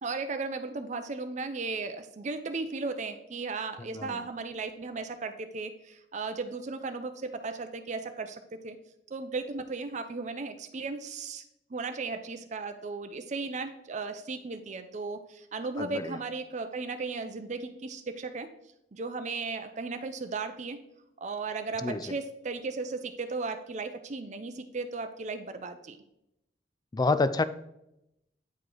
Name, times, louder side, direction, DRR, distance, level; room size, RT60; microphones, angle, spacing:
voice 1, 0.0-8.8 9.1-11.4 11.7-18.5 18.9-20.8 21.2-26.0, right 4 dB, 40° right, 9 dB, 0.5 m, -36 dB
voice 2, 15.8-16.2 21.8-22.0 26.9-27.4, left 3 dB, 25° left, 14 dB, 0.3 m, -27 dB
9.3 x 4.8 x 3.8 m, 0.83 s
head